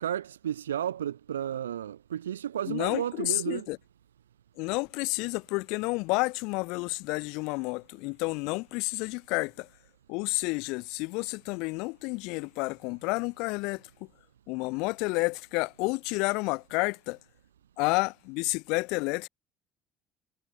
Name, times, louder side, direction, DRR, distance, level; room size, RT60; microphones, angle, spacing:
voice 1, 0.0-3.7, right 10 dB, 85° right, 0.8 m, -32 dB
voice 2, 2.7-3.8 4.6-9.7 10.1-13.8 14.5-17.2 17.8-19.3, left 27 dB, 70° left, 0.9 m, -30 dB
hypercardioid pair, 60°, 0 cm